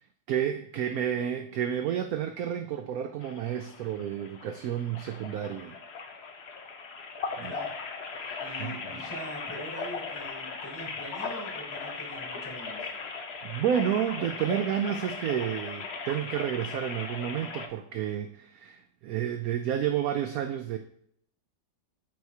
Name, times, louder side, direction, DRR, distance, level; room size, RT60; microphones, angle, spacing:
voice 1, 0.3-5.8 7.4-7.5 8.2-8.8 13.4-20.8, right 9 dB, 75° right, 7 dB, 0.8 m, -30 dB
sound 1, 3.2-17.7, left 4 dB, 55° left, 0.7 m, -38 dB
voice 2, 7.3-7.7 8.4-12.9, right 1 dB, 10° left, -4 dB, 3.3 m, -43 dB
14.0 x 4.7 x 2.8 m, 0.69 s
omnidirectional pair, 2.0 m